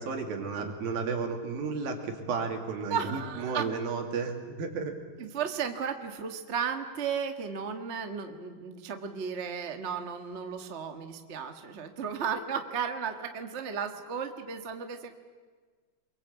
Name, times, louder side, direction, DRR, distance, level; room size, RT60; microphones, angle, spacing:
voice 1, 0.0-4.9, right 5 dB, 85° right, 3 dB, 4.5 m, -33 dB
voice 2, 2.9-3.7 5.2-15.1, right 6 dB, 40° right, 5 dB, 0.9 m, -34 dB
28.5 x 22.5 x 8.3 m, 1.5 s
omnidirectional pair, 4.1 m